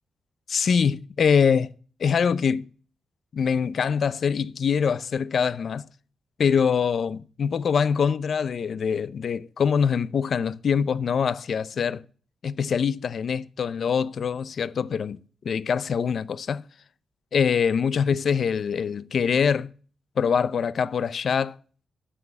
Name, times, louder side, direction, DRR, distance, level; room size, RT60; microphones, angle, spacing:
voice 1, 0.5-1.7 2.0-2.7 3.3-5.9 6.4-12.0 12.4-15.2 15.4-16.6 17.3-19.7 20.2-21.6, left 6 dB, 60° left, 0.6 m, -24 dB
10.0 x 7.7 x 8.2 m
cardioid pair, 95°, 0 cm